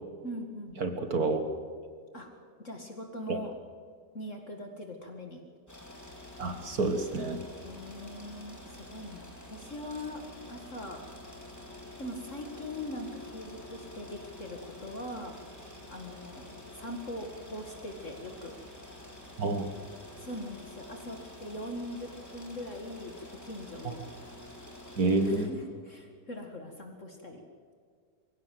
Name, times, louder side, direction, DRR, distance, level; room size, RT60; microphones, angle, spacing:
voice 1, 0.2-0.8 2.1-2.3 2.6-3.6 4.1-5.4 7.6-10.2 10.5-11.0 12.0-15.4 15.9-18.5 20.2-24.0 25.2-27.4, left 1 dB, 45° left, 3 dB, 2.3 m, -41 dB
voice 2, 0.8-1.4 3.3-3.4 6.4-7.4 19.4-19.7 25.0-25.5, right 3 dB, 60° right, 7 dB, 1.9 m, -28 dB
sound 1, 5.7-25.5, left 1 dB, 10° left, 4.0 m, -48 dB
24.5 x 16.0 x 7.8 m, 2.1 s
omnidirectional pair, 1.9 m